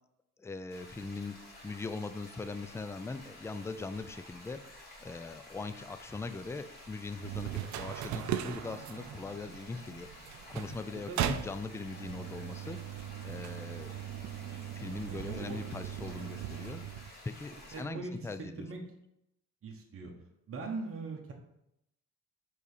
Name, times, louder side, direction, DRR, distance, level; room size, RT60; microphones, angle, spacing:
voice 1, 0.4-13.0 13.2-13.9 14.7-16.8 17.2-18.7, left 3 dB, 10° left, 11 dB, 0.3 m, -41 dB
sound 1, 0.7-17.8, left 1 dB, 30° left, 2.5 m, -52 dB
sound 2, 7.2-17.1, right 10 dB, 70° right, 0.5 m, -39 dB
voice 2, 15.1-15.6 17.7-18.2 18.6-18.8 19.6-20.1 20.5-21.3, right 3 dB, 45° right, 1 dB, 1.2 m, -40 dB
5.1 x 4.0 x 5.0 m, 0.82 s
cardioid pair, 90°, 30 cm